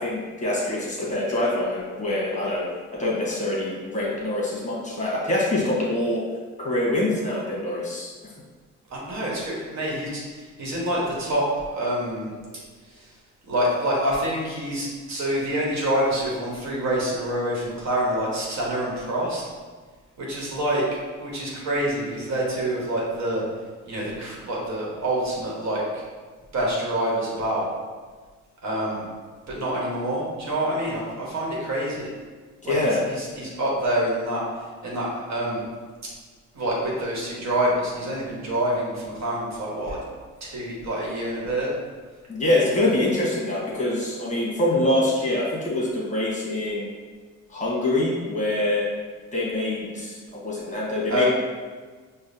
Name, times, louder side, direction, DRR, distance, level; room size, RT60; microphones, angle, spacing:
voice 1, 0.0-2.6 3.0-6.2 6.6-8.1 32.6-33.0 42.3-46.9 47.5-48.9 49.3-51.2, left 1 dB, 25° left, -5 dB, 1.1 m, -25 dB
voice 2, 8.9-12.3 13.5-19.4 20.2-20.8 21.2-23.4 23.8-25.8 26.5-27.7 28.6-29.0 29.5-32.1 32.6-34.4 34.8-35.6 36.5-40.0 40.4-41.7 51.1-51.2, right 1 dB, 65° right, -4 dB, 1.3 m, -26 dB
5.0 x 2.3 x 2.7 m, 1.5 s
cardioid pair, 90°, 30 cm